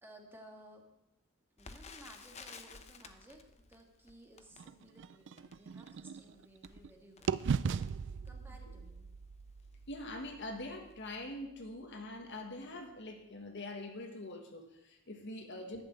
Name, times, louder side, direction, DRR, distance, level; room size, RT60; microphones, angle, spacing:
voice 1, 0.0-0.8 1.6-3.4 3.7-7.4 8.2-9.1, right 1 dB, 10° right, 1 dB, 1.7 m, -57 dB
Crackle, 1.6-8.6 9.2-9.3 9.6-9.8 10.4-10.6 10.9-11.0, left 4 dB, 30° left, 0.8 m, -55 dB
sound 1, 4.6-6.9 7.3-11.2, right 6 dB, 60° right, 0.4 m, -39 dB
voice 2, 9.9-15.8, left 1 dB, 60° left, 4 dB, 1.5 m, -44 dB
11.5 x 5.8 x 8.5 m, 0.89 s
head